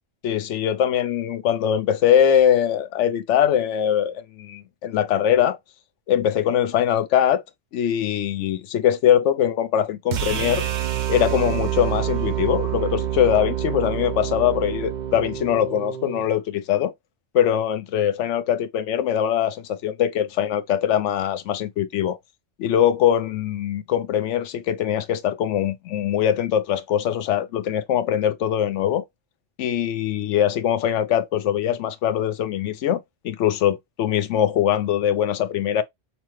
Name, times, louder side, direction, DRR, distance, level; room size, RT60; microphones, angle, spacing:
voice 1, 0.2-5.6 6.1-7.4 7.7-10.6 11.1-16.9 17.3-22.2 22.6-29.0 29.6-35.8, left 10 dB, 80° left, 1.0 m, -22 dB
sound 1, 10.1-16.2, right 11 dB, 55° right, 0.5 m, -27 dB
5.6 x 2.1 x 3.0 m
omnidirectional pair, 1.2 m